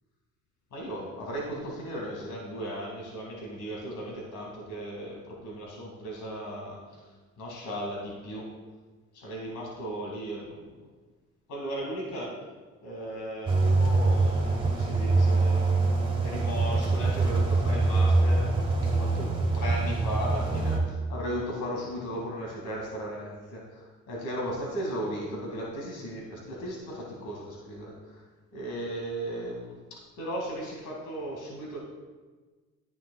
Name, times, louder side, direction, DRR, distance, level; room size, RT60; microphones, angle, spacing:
voice 1, 0.7-7.0 7.4-8.5 9.1-10.9 11.5-12.3 12.8-15.9 16.2-28.2 28.5-29.8 30.2-31.8, equal, 80° left, -2 dB, 2.2 m, -36 dB
sound 1, 13.5-20.8, right 3 dB, 15° right, 2.1 m, -24 dB
11.5 x 9.5 x 2.3 m, 1.3 s
cardioid pair, 90°, 30 cm